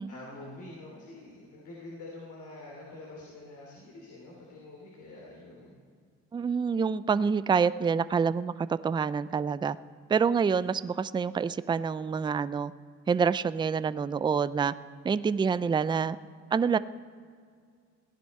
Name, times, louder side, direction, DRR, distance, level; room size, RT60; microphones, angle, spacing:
voice 1, 0.1-5.7, left 2 dB, 75° left, -3 dB, 3.2 m, -46 dB
voice 2, 6.3-9.8 10.1-12.7 13.1-14.7 15.0-16.2 16.5-16.8, right 6 dB, 15° right, 16 dB, 0.3 m, -27 dB
16.5 x 10.5 x 5.4 m, 2.1 s
cardioid pair, 90°, 30 cm